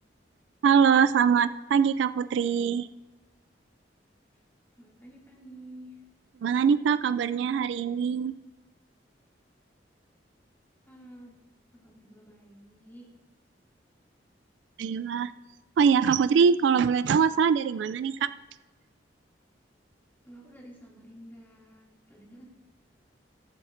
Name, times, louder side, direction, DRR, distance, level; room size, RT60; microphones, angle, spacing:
voice 1, 0.6-2.9 6.4-8.3 14.8-15.3 15.8-18.3, right 6 dB, 75° right, 14 dB, 0.3 m, -23 dB
voice 2, 4.7-6.0 10.8-11.4 11.7-13.1 20.2-22.5, right 1 dB, 10° left, -4 dB, 2.5 m, -50 dB
20.5 x 7.7 x 2.6 m, 1.1 s
head